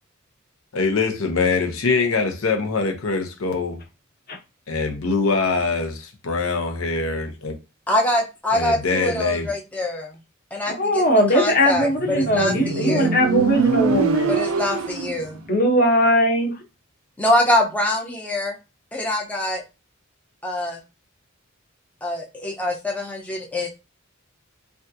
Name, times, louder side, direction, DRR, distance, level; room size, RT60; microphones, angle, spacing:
voice 1, 0.7-3.8 4.7-7.5 8.5-9.5, left 4 dB, 80° left, 4 dB, 0.7 m, -23 dB
voice 2, 7.9-10.2 10.5-13.2 14.2-15.4 17.2-18.5 18.9-19.6 20.4-20.8 22.0-23.7, left 1 dB, 5° left, -1 dB, 0.5 m, -24 dB
voice 3, 10.8-14.3 15.5-16.5, equal, 45° left, 1 dB, 1.0 m, -19 dB
Motorcycle, 11.8-15.3, right 5 dB, 70° right, 0.5 m, -23 dB
3.4 x 2.4 x 2.7 m, 0.27 s
head